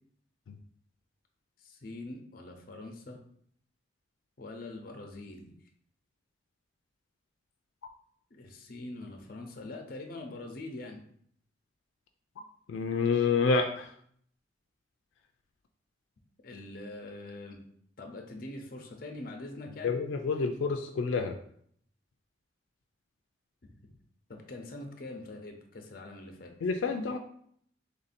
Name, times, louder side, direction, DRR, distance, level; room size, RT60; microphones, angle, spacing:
voice 1, 1.6-3.2 4.4-5.5 8.3-11.0 16.4-17.6 18.0-20.0 23.6-23.7 24.3-26.5, left 2 dB, 50° left, 3 dB, 0.6 m, -43 dB
voice 2, 12.7-13.9 19.8-21.3 26.6-27.2, left 4 dB, 85° left, 5 dB, 0.3 m, -28 dB
3.5 x 2.6 x 4.1 m, 0.65 s
head